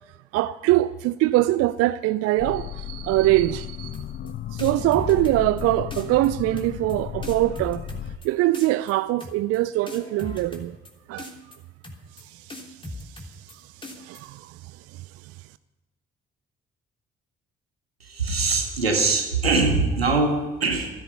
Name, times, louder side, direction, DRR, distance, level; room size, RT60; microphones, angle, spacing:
voice 1, 0.3-4.0 4.5-7.9 8.2-10.8 11.1-11.3 12.2-12.6 13.5-13.7 13.9-14.6 14.9-15.0, right 16 dB, 55° right, 0.5 m, -23 dB
sound 1, 2.4-8.2, left 11 dB, 35° left, 0.5 m, -34 dB
sound 2, 3.9-4.3 4.6-5.6 5.9-6.3 6.6-6.9 7.2-8.3 8.5-8.9 9.2-9.6 9.9-10.9 11.2-11.6 11.8-12.2 12.5-13.5 13.8-14.2, left 1 dB, 15° left, 3.3 m, -39 dB
voice 2, 18.0-20.9, right 3 dB, 85° right, 1.8 m, -22 dB
16.0 x 13.0 x 5.8 m
figure-of-eight pair, 45°, 30 cm